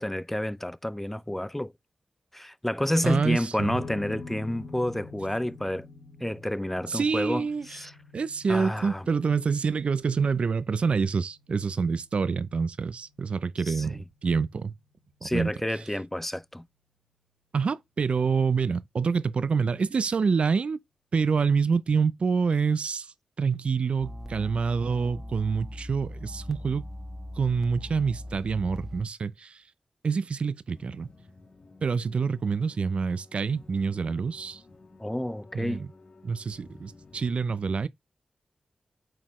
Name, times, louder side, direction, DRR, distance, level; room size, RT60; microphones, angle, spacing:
voice 1, 0.0-1.7 2.3-5.9 6.2-7.9 8.5-9.1 13.7-14.0 15.2-16.6 35.0-35.9, left 1 dB, 10° left, 0.5 m, -30 dB
voice 2, 3.0-3.8 6.9-7.7 8.1-14.7 15.2-15.5 17.5-20.8 21.1-26.9 27.4-29.6 30.0-31.1 31.8-34.6 35.5-35.9 36.2-37.9, right 5 dB, 65° right, 0.4 m, -27 dB
sound 1, 3.6-16.1, left 4 dB, 90° left, 1.8 m, -47 dB
sound 2, 24.0-29.0, left 1 dB, 20° right, 1.2 m, -40 dB
sound 3, 30.7-37.3, left 3 dB, 60° left, 1.6 m, -53 dB
8.8 x 4.0 x 3.0 m
cardioid pair, 45°, 2 cm